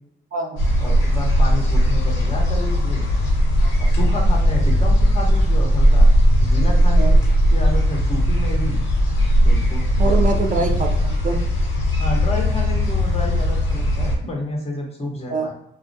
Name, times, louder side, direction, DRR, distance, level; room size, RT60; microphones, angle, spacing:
sound 1, 0.6-14.2, equal, 80° left, 1.0 m, -18 dB
voice 1, 0.8-3.0 3.8-6.1 6.4-7.2 7.5-8.8 9.4-10.2 12.0-15.5, left 1 dB, 30° left, -1 dB, 0.7 m, -29 dB
voice 2, 10.0-11.4 15.3-15.5, right 4 dB, 40° right, 2 dB, 0.4 m, -24 dB
2.3 x 2.1 x 2.6 m, 0.79 s
cardioid pair, 90°, 20 cm